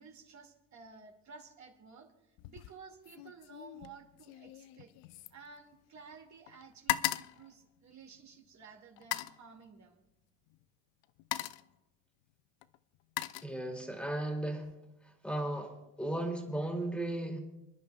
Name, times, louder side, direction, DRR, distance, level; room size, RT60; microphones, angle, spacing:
voice 1, 0.0-4.9 5.3-10.0, right 5 dB, 45° right, 3 dB, 2.4 m, -54 dB
sound 1, 2.4-2.8 3.0-6.2 6.5-8.4 9.0-9.4 10.5-10.6 11.0-11.8 12.6-14.0 14.4-14.7, left 16 dB, 85° left, 0.6 m, -39 dB
voice 2, 13.4-14.7 15.0-15.7 16.0-17.4, right 1 dB, 5° left, 2 dB, 2.6 m, -35 dB
29.0 x 10.5 x 2.4 m, 0.95 s
cardioid pair, 100°, 41 cm